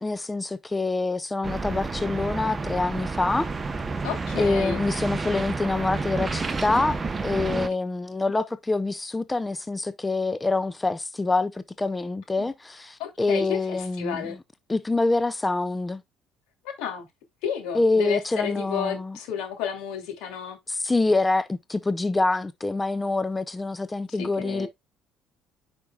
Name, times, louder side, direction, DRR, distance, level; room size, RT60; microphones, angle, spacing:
voice 1, 0.0-3.5 4.4-14.3 14.7-16.0 17.7-19.2 20.7-24.7, left 3 dB, 10° left, 0.4 m, -26 dB
sound 1, 1.4-7.7, right 3 dB, 20° right, 0.8 m, -30 dB
voice 2, 4.0-4.8 8.3-8.5 12.4-12.5 13.0-14.4 16.8-17.1 17.4-20.6 24.2-24.7, left 8 dB, 85° left, 2.7 m, -32 dB
9.5 x 5.1 x 2.3 m
cardioid pair, 145°, 0 cm